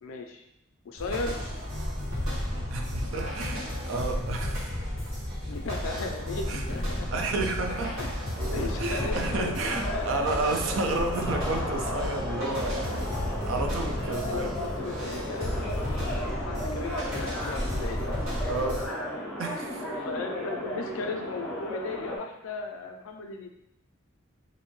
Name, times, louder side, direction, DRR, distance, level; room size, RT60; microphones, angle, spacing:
voice 1, 0.0-0.4 0.8-1.4 5.5-7.4 8.0-8.1 8.3-11.0 11.5-12.0 12.9-13.4 14.0-18.0 19.8-23.6, left 3 dB, 75° left, 5 dB, 0.4 m, -37 dB
sound 1, 1.0-18.9, left 1 dB, 85° right, 1.3 m, -33 dB
voice 2, 2.7-4.7 6.5-6.6 7.1-8.1 8.8-13.1 13.4-14.6 18.5-18.9 19.4-19.9, right 3 dB, 70° right, 4 dB, 0.3 m, -31 dB
sound 2, 8.4-22.2, equal, 5° left, 0.5 m, -35 dB
2.5 x 2.1 x 3.0 m, 0.79 s
head